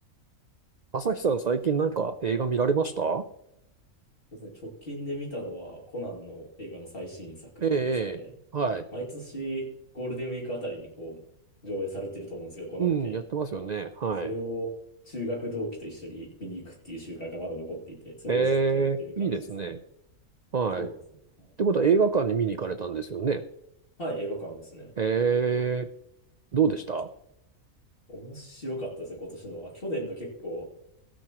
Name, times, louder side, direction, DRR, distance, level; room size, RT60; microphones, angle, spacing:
voice 1, 0.9-3.2 7.6-8.2 8.5-8.9 12.8-14.3 18.3-19.8 20.5-20.9 21.6-23.4 25.0-25.9 26.5-27.1, right 5 dB, 70° right, 10 dB, 0.4 m, -26 dB
voice 2, 4.3-8.3 8.9-11.2 11.6-13.2 14.2-14.7 15.0-19.7 20.8-21.0 21.4-21.5 24.0-24.9 28.1-30.7, equal, 40° left, -3 dB, 2.9 m, -36 dB
18.0 x 9.1 x 3.0 m, 0.82 s
omnidirectional pair, 1.5 m